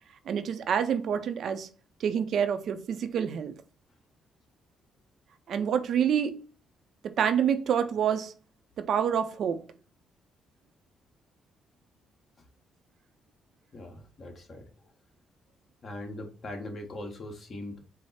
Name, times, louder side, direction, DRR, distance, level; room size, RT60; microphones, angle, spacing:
voice 1, 0.3-1.7 2.0-3.5 5.5-6.5 7.0-8.3 8.8-9.7, right 8 dB, 65° right, 0.5 m, -27 dB
voice 2, 13.7-14.9 15.8-17.8, left 1 dB, 45° left, 1.2 m, -41 dB
4.8 x 2.0 x 4.2 m
cardioid pair, 90°, 0 cm